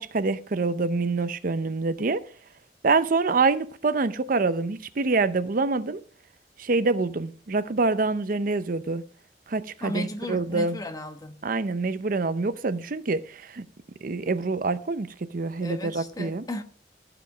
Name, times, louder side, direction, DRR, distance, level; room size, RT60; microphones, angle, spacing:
voice 1, 0.0-2.3 2.8-6.0 6.6-9.0 9.5-10.8 11.4-13.6 14.0-15.1 15.3-16.4, right 3 dB, 50° right, 0.6 m, -26 dB
voice 2, 9.8-11.4 15.6-16.6, left 1 dB, 20° left, 1.1 m, -35 dB
14.5 x 5.1 x 6.0 m
head